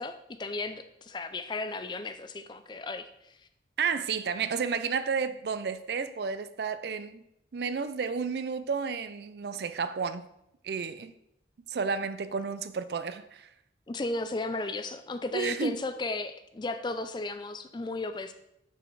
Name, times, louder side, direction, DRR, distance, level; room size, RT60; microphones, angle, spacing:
voice 1, 0.0-3.3 13.9-18.3, left 2 dB, 25° left, 0.4 m, -35 dB
voice 2, 3.8-7.2 7.5-10.2 10.6-11.1 11.7-13.5 15.3-15.8, right 5 dB, 65° right, 0.4 m, -31 dB
5.6 x 4.2 x 4.6 m
head